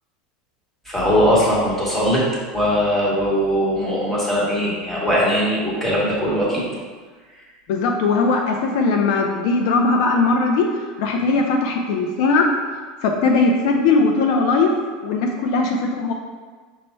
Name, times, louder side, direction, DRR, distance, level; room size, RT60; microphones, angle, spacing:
voice 1, 0.8-2.2 2.5-6.6, equal, 5° left, -6 dB, 1.0 m, -20 dB
voice 2, 7.7-10.7 11.0-12.5 13.0-14.7 15.0-16.1, left 3 dB, 60° left, 2 dB, 0.4 m, -19 dB
5.4 x 2.1 x 4.3 m, 1.4 s
supercardioid pair, 165°, 4 cm